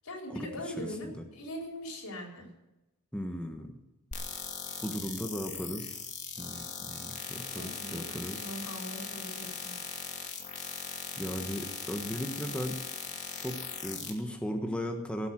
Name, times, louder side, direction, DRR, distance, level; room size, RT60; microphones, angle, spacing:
voice 1, 0.0-2.5 7.5-9.7, equal, 90° left, 0 dB, 4.6 m, -41 dB
voice 2, 0.8-1.1 3.1-3.8 4.8-6.1 6.4-8.4 11.2-12.8 13.3-15.3, equal, 5° left, 3 dB, 1.3 m, -37 dB
sound 1, 4.1-14.1, left 5 dB, 35° left, 2.4 m, -39 dB
18.5 x 8.2 x 7.7 m, 0.95 s
head